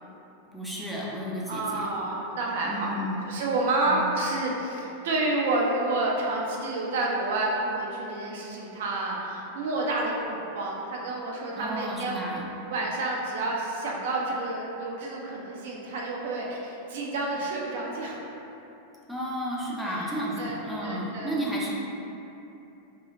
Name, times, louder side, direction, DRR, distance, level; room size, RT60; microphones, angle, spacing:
voice 1, 0.5-1.9 2.6-3.2 3.9-4.1 11.6-12.5 19.1-21.7, equal, ahead, -6 dB, 0.4 m, -32 dB
voice 2, 1.5-2.9 3.3-12.2 12.7-18.2 19.8-20.1 20.4-21.3, right 2 dB, 55° right, -3 dB, 0.4 m, -29 dB
2.8 x 2.3 x 2.7 m, 2.9 s
figure-of-eight pair, 90°, 0 cm